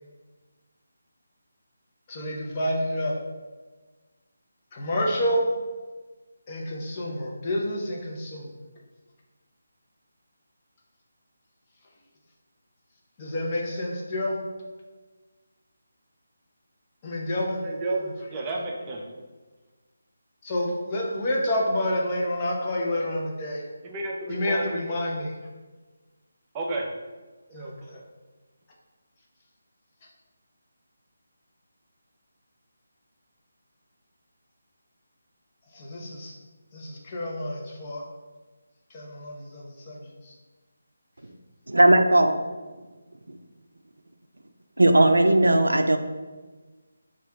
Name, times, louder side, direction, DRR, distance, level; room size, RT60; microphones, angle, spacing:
voice 1, 2.1-3.2 4.7-5.5 6.5-8.5 13.2-14.4 17.0-17.6 18.0-18.1 20.4-23.6 24.3-25.4 27.5-28.0 35.7-36.3 36.7-38.0 38.9-40.3, left 1 dB, 25° left, -3 dB, 0.8 m, -29 dB
voice 2, 17.6-19.0 23.8-24.8 26.5-26.9 27.5-28.0, right 2 dB, 20° right, -1 dB, 0.5 m, -32 dB
voice 3, 41.7-42.4 43.3-43.4 44.8-46.0, right 1 dB, 85° right, 7 dB, 0.4 m, -18 dB
4.4 x 2.4 x 3.4 m, 1.3 s
figure-of-eight pair, 160°, 0 cm